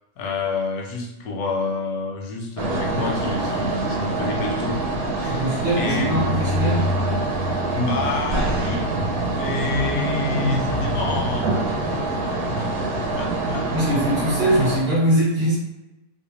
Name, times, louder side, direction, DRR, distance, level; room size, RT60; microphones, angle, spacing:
voice 1, 0.2-4.9 5.2-6.1 7.8-8.9 9.3-11.5 12.5-12.8 13.1-13.6, left 3 dB, 80° left, 1 dB, 1.1 m, -29 dB
sound 1, 2.6-14.8, right 1 dB, 90° right, 1.1 m, -24 dB
voice 2, 5.2-6.9 13.7-15.6, right 1 dB, 45° right, -7 dB, 1.0 m, -22 dB
2.8 x 2.1 x 2.8 m, 0.99 s
omnidirectional pair, 1.6 m